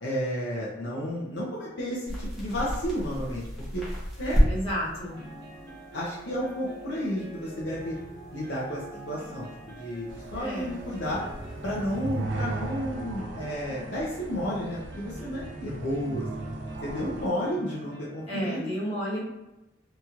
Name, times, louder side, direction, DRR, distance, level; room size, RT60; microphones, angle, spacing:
voice 1, 0.0-3.5 3.7-3.8 4.2-4.5 5.9-8.0 8.3-11.3 11.6-16.5 16.8-18.7, equal, 65° left, -6 dB, 0.6 m, -32 dB
sound 1, 2.0-12.2, equal, ahead, 0.8 m, -33 dB
voice 2, 4.4-5.1 10.4-10.7 18.3-19.2, equal, 30° left, -9 dB, 1.1 m, -32 dB
sound 2, 5.1-18.4, right 2 dB, 60° right, 0.9 m, -43 dB
sound 3, 10.1-17.3, right 2 dB, 75° right, 0.4 m, -37 dB
2.9 x 2.8 x 2.4 m, 0.94 s
head